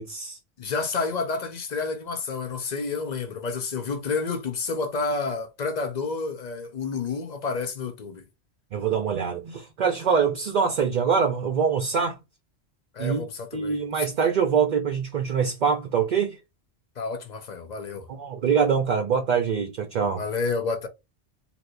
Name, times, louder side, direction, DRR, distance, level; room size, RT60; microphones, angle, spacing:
voice 1, 0.0-0.4 8.7-12.2 13.0-13.3 13.5-16.4 18.1-20.2, right 6 dB, 50° right, 0.6 m, -24 dB
voice 2, 0.6-8.3 12.9-14.1 17.0-18.1 20.1-20.9, left 4 dB, 50° left, 0.6 m, -30 dB
3.4 x 2.7 x 2.5 m
omnidirectional pair, 1.2 m